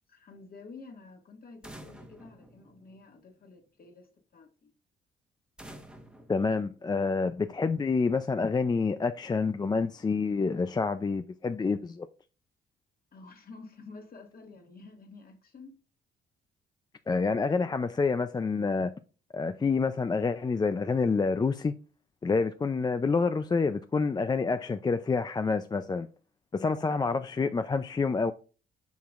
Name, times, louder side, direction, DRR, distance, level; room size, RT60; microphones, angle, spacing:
voice 1, 0.1-4.7 13.1-15.8, left 3 dB, 50° left, 1.8 m, -50 dB
sound 1, 1.6-3.4 5.6-7.3, right 1 dB, 5° right, 1.1 m, -50 dB
voice 2, 6.3-12.1 17.1-18.9 19.3-21.7 22.2-26.1 26.5-28.3, left 4 dB, 20° left, 0.4 m, -28 dB
7.2 x 6.0 x 2.4 m
cardioid pair, 90°, 20 cm